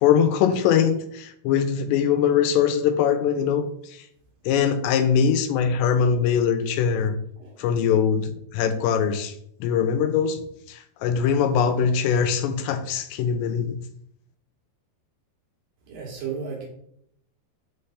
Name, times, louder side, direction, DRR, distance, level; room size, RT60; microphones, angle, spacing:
voice 1, 0.0-4.0 4.5-7.1 7.6-9.3 9.6-10.4 10.7-13.8, left 7 dB, 85° left, 8 dB, 2.8 m, -22 dB
voice 2, 15.8-16.6, right 6 dB, 65° right, -2 dB, 2.5 m, -33 dB
6.3 x 3.2 x 5.5 m, 0.71 s
omnidirectional pair, 5.0 m